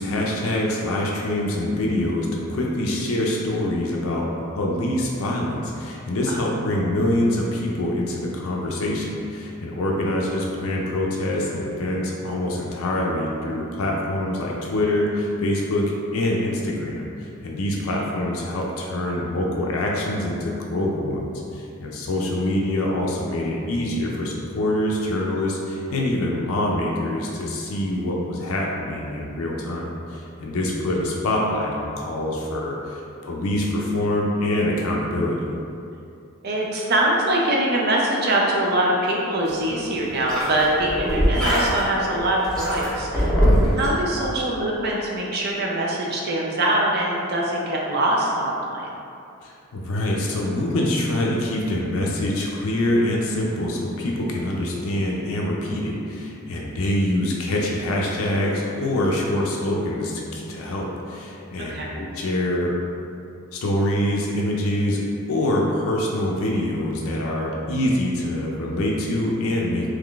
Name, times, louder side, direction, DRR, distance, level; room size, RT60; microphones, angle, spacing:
voice 1, 0.0-35.4 43.4-43.8 49.4-62.8 63.5-65.0 65.3-69.9, left 1 dB, 75° left, -2 dB, 0.4 m, -25 dB
voice 2, 6.3-6.6 17.9-18.1 30.7-30.9 36.4-43.3 43.7-48.9 61.6-62.0, right 1 dB, 45° right, -3 dB, 0.5 m, -23 dB
sound 1, 39.4-43.9, equal, 5° left, 0.7 m, -23 dB
3.6 x 3.1 x 2.4 m, 2.5 s
head